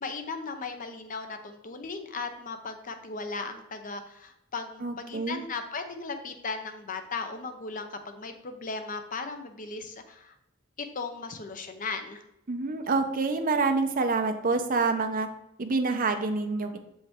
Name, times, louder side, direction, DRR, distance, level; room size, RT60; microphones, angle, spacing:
voice 1, 0.0-10.3 10.9-12.2, left 4 dB, 40° left, 7 dB, 0.7 m, -37 dB
voice 2, 4.8-5.4 12.5-15.3 15.6-16.8, right 3 dB, 45° right, 6 dB, 0.7 m, -27 dB
6.7 x 5.3 x 3.6 m, 0.84 s
head